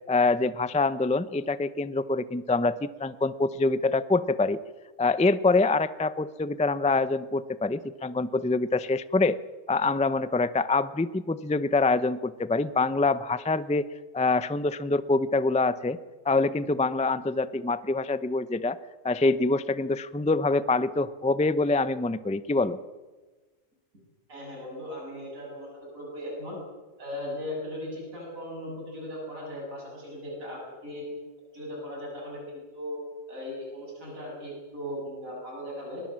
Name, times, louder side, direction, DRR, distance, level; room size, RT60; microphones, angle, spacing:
voice 1, 0.1-4.6 5.0-9.4 9.7-16.0 16.3-18.8 19.0-22.8, left 3 dB, 10° left, 15 dB, 0.3 m, -25 dB
voice 2, 24.3-26.6 27.0-31.0 31.5-33.0 33.3-36.0, left 1 dB, 85° right, -2 dB, 7.6 m, -38 dB
22.0 x 21.0 x 7.6 m, 1.3 s
omnidirectional pair, 1.4 m